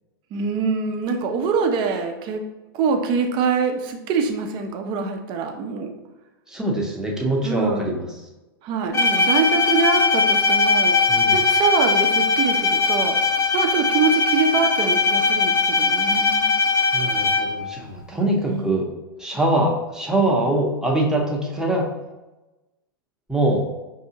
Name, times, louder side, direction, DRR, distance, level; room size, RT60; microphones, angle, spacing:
voice 1, 0.3-2.4 2.7-5.9 7.4-7.9 8.6-11.0 11.3-13.2 13.5-16.5 18.5-18.7, right 5 dB, 40° right, 5 dB, 0.6 m, -24 dB
voice 2, 6.5-8.0 11.1-11.4 16.9-18.9 19.2-21.9 23.3-23.7, right 1 dB, 5° right, -1 dB, 0.8 m, -23 dB
Bowed string instrument, 8.9-17.7, left 4 dB, 25° left, 0.6 m, -20 dB
5.2 x 2.7 x 2.8 m, 1.1 s
hypercardioid pair, 115°, 12 cm